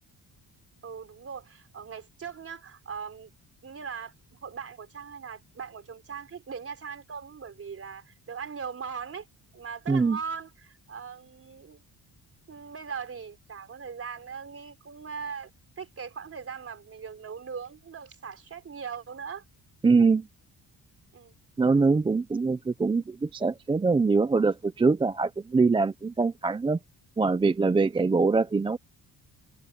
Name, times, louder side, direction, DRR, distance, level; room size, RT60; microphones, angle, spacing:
voice 1, 0.8-3.3 3.6-9.3 9.5-11.8 12.5-15.5 15.8-19.4 21.1-21.4 21.7-22.0, right 6 dB, 35° right, 3.8 m, -40 dB
voice 2, 19.8-20.2 21.6-26.8 27.2-28.8, right 4 dB, 15° right, 0.3 m, -23 dB
wide cardioid pair, 170°, 39 cm